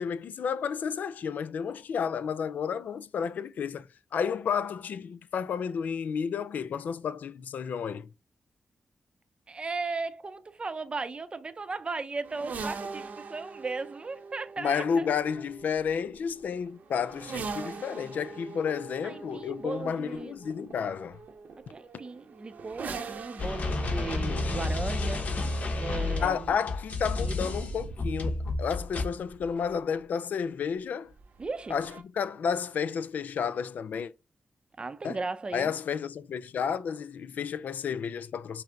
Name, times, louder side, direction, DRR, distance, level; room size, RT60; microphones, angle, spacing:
voice 1, 0.0-3.9 4.1-8.1 14.6-21.2 26.2-31.1 31.7-34.1 35.0-35.2 35.5-38.6, left 7 dB, 75° left, 0.3 m, -31 dB
voice 2, 9.5-15.1 19.0-20.4 21.7-25.2 25.7-26.6 27.2-27.5 31.4-31.8 34.8-35.7, right 3 dB, 35° right, 0.5 m, -36 dB
sound 1, 12.2-30.0 31.1-32.0, right 4 dB, 70° right, 0.7 m, -43 dB
sound 2, 23.4-29.0, left 2 dB, 55° left, 0.9 m, -31 dB
5.6 x 2.0 x 3.7 m
cardioid pair, 65°, 3 cm